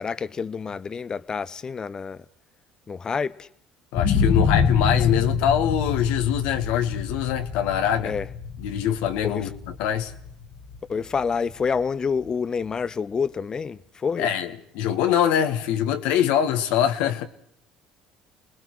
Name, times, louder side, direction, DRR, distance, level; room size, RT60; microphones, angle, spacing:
voice 1, 0.0-2.2 2.9-3.5 8.0-8.3 9.2-9.5 10.9-14.3, left 5 dB, 35° left, 0.9 m, -28 dB
voice 2, 3.9-8.1 8.6-9.5 9.8-10.1 14.2-17.3, left 9 dB, 75° left, 1.5 m, -23 dB
sound 1, 3.9-11.8 12.3-12.4, left 6 dB, 55° left, 1.5 m, -26 dB
29.0 x 20.5 x 4.7 m
hypercardioid pair, 70°, 2 cm